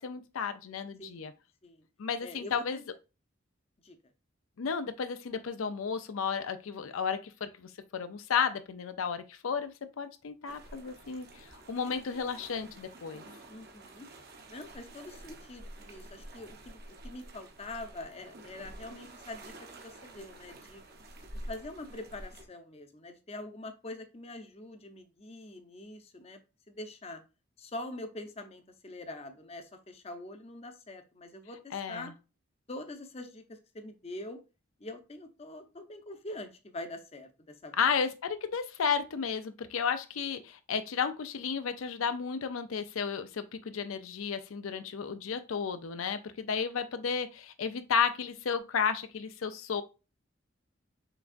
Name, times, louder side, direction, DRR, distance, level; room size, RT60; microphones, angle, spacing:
voice 1, 0.0-1.3 2.0-2.8 4.6-13.2 31.7-32.1 37.8-49.8, left 6 dB, 85° left, 0.5 m, -33 dB
voice 2, 1.0-1.3 1.6-1.8 2.2-2.8 3.8-4.0 13.5-14.1 14.5-20.8 21.3-26.4 26.7-27.2 27.6-32.1 32.7-34.4 34.8-37.8, left 2 dB, 30° left, 0.6 m, -44 dB
sound 1, 10.5-22.4, right 1 dB, 50° right, 0.9 m, -49 dB
5.8 x 3.4 x 2.5 m
head